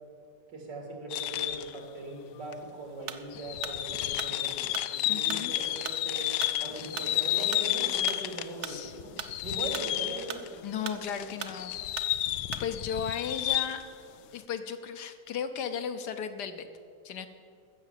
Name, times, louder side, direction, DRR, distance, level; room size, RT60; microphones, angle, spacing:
voice 1, 0.5-4.6 4.9-6.3 6.6-9.1 9.4-11.0 11.5-11.7, right 2 dB, 85° right, 0 dB, 3.2 m, -40 dB
sound 1, 1.1-1.8 2.5-2.6 3.3-8.6 8.9-10.5 11.0-13.9, left 13 dB, 90° left, 1.3 m, -31 dB
sound 2, 3.1-12.8, right 8 dB, 60° right, 0.8 m, -41 dB
voice 2, 5.1-5.5 8.6-8.9 10.6-11.7 12.6-13.8 14.3-16.7 17.0-17.3, left 7 dB, 75° left, 8 dB, 1.4 m, -35 dB
15.0 x 6.6 x 7.5 m, 2.2 s
omnidirectional pair, 1.9 m